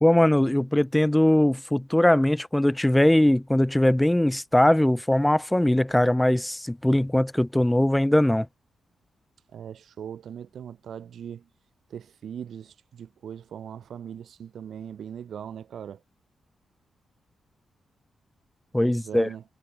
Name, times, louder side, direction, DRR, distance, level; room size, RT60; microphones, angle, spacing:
voice 1, 0.0-8.5 18.7-19.3, left 1 dB, 5° left, 0.5 m, -21 dB
voice 2, 9.5-11.5 11.9-16.0 18.8-19.4, right 8 dB, 75° right, 0.7 m, -40 dB
cardioid pair, 110°, 0 cm